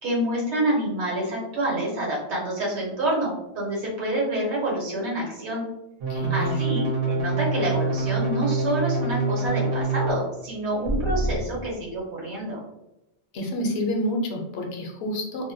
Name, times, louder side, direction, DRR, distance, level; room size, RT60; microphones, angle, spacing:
voice 1, 0.0-5.6 6.3-12.6, right 1 dB, 80° right, -3 dB, 1.3 m, -27 dB
sound 1, 6.0-10.1 10.9-11.4, right 3 dB, 60° right, 0.9 m, -25 dB
voice 2, 6.1-6.6 13.3-15.5, left 1 dB, 70° left, 1 dB, 0.8 m, -28 dB
2.7 x 2.1 x 2.6 m, 0.92 s
omnidirectional pair, 1.1 m